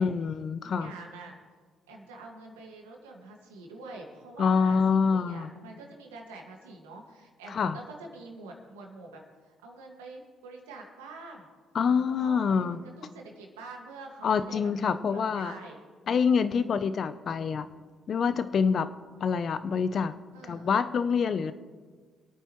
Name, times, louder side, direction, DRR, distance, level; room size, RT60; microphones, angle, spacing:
voice 1, 0.0-0.9 4.4-5.5 7.5-7.8 11.7-12.8 14.2-15.5 16.1-17.7 18.1-18.9 19.2-20.1 20.4-21.5, left 6 dB, 55° left, 12 dB, 0.7 m, -26 dB
voice 2, 0.6-1.4 1.9-11.5 12.2-12.6 13.0-14.6 14.9-15.8 20.3-20.7, right 3 dB, 90° right, 1 dB, 1.9 m, -46 dB
25.5 x 9.0 x 3.1 m, 1.5 s
hypercardioid pair, 50°, 0 cm